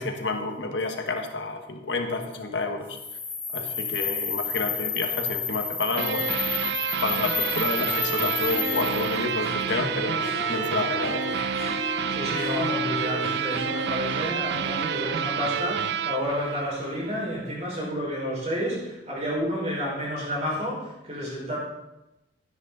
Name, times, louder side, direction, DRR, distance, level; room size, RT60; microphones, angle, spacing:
voice 1, 0.0-3.0 3.5-6.3 7.0-11.4, left 3 dB, 70° left, 4 dB, 1.4 m, -30 dB
sound 1, 2.9-9.2, left 6 dB, 10° left, 2.5 m, -30 dB
sound 2, 6.0-17.2, right 7 dB, 60° right, 0.3 m, -29 dB
Harp, 7.1-7.2 7.4-16.9, left 4 dB, 50° left, 0.9 m, -37 dB
voice 2, 12.1-21.6, equal, 35° right, -5 dB, 5.0 m, -30 dB
12.0 x 10.5 x 4.0 m, 0.94 s
head